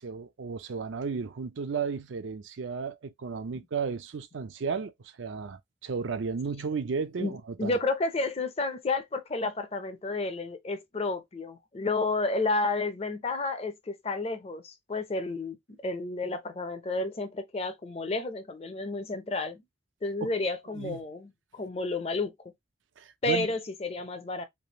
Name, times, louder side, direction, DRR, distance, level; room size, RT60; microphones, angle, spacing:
voice 1, 0.0-7.8 20.2-20.3 20.7-21.0 23.0-23.5, right 5 dB, 75° right, 0.5 m, -34 dB
voice 2, 7.2-19.6 20.0-22.3 23.2-24.4, left 3 dB, 30° left, 0.5 m, -31 dB
3.3 x 2.4 x 2.8 m
head